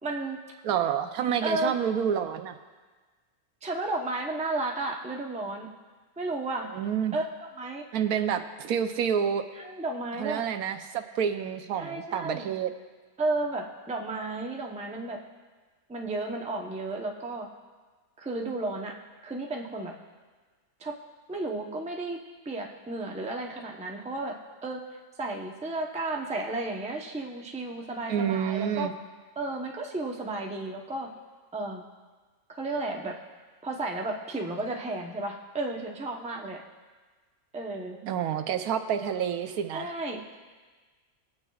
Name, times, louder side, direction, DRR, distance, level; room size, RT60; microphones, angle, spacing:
voice 1, 0.0-0.4 1.4-1.7 3.6-5.7 6.2-6.7 7.1-7.3 7.6-7.8 9.6-10.4 11.7-12.5 13.2-15.2 15.9-17.5 18.2-19.0 19.2-19.9 20.8-21.0 21.3-22.2 22.4-24.4 24.6-24.8 25.2-28.9 29.4-31.1 31.5-31.8 32.6-33.2 33.6-36.6 37.5-38.0 39.7-40.3, right 2 dB, 5° right, 0 dB, 0.5 m, -33 dB
voice 2, 0.6-2.6 6.7-7.2 7.9-9.4 10.2-12.7 28.1-28.9 38.0-39.9, right 8 dB, 80° right, 8 dB, 1.2 m, -28 dB
19.5 x 8.8 x 2.4 m, 1.4 s
omnidirectional pair, 1.5 m